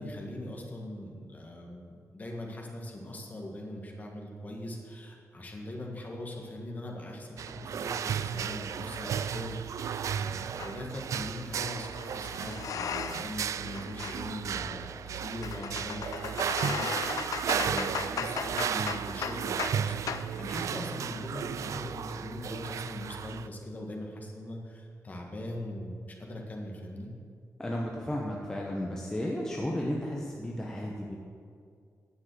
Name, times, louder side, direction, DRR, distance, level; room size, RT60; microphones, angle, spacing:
voice 1, 0.0-27.1, left 1 dB, 30° left, 0 dB, 1.6 m, -41 dB
Bucket drop into the well with water spilling Far, 7.4-23.5, right 8 dB, 65° right, 0.3 m, -34 dB
sound 1, 10.6-10.8 11.8-13.4 13.7-19.8 20.1-20.3, left 7 dB, 90° left, 0.5 m, -37 dB
voice 2, 27.6-31.2, left 1 dB, 10° left, -2 dB, 0.9 m, -33 dB
9.8 x 7.3 x 7.7 m, 2.2 s
wide cardioid pair, 170°, 6 cm